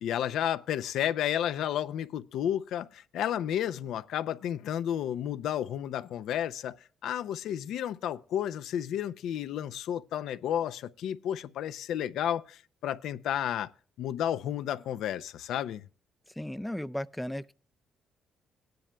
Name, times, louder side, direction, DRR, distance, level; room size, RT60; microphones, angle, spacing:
voice 1, 0.0-6.8 7.0-13.7 14.0-15.8, left 10 dB, 80° left, 0.5 m, -32 dB
voice 2, 16.4-17.5, left 1 dB, 5° left, 0.4 m, -35 dB
17.0 x 10.5 x 2.2 m
cardioid pair, 90°, 0 cm